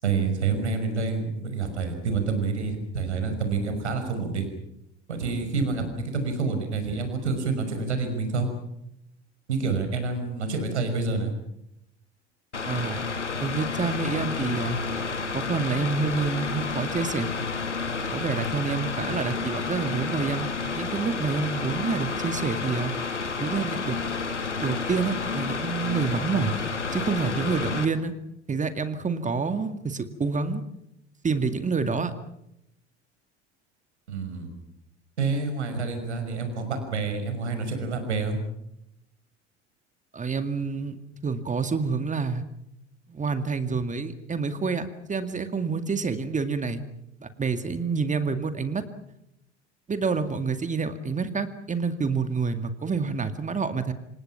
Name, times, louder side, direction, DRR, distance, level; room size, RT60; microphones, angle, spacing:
voice 1, 0.0-4.5 5.1-8.5 9.5-11.3 34.1-34.5 35.2-38.4, right 4 dB, 75° right, 7 dB, 6.0 m, -28 dB
Mechanical fan, 12.5-27.9, left 4 dB, 85° left, 2.2 m, -30 dB
voice 2, 12.6-13.0 13.4-14.8 15.3-17.3 18.1-20.5 20.8-22.9 23.4-24.0 24.6-26.5 26.9-28.1 28.5-30.6 31.2-32.1 40.1-42.4 43.1-46.8 47.2-48.8 49.9-53.9, right 4 dB, 20° right, 10 dB, 2.2 m, -28 dB
27.5 x 26.5 x 5.9 m, 0.82 s
figure-of-eight pair, 70°, 35 cm